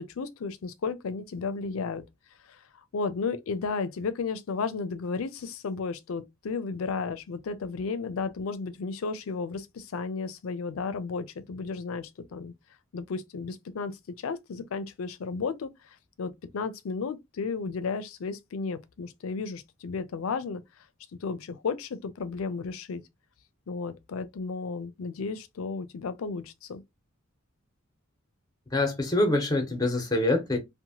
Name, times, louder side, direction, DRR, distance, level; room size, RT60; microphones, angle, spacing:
voice 1, 0.0-2.0 2.5-2.6 2.9-12.5 12.9-15.7 16.2-20.6 21.1-23.0 23.7-26.8, left 4 dB, 80° left, 0.4 m, -33 dB
voice 2, 28.7-30.6, left 2 dB, 20° left, 0.8 m, -25 dB
2.8 x 2.1 x 2.8 m
head